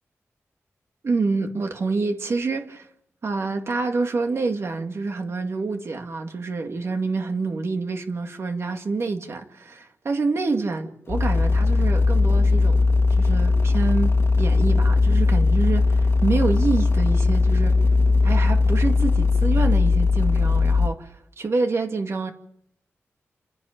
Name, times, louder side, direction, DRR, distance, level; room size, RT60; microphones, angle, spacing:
voice 1, 1.0-2.9 3.2-12.8 13.1-17.8 18.2-22.3, right 3 dB, 60° right, 2.2 m, -27 dB
sound 1, 11.1-20.9, left 3 dB, 55° left, 1.7 m, -19 dB
29.5 x 10.5 x 8.7 m
wide cardioid pair, 125°, 5 cm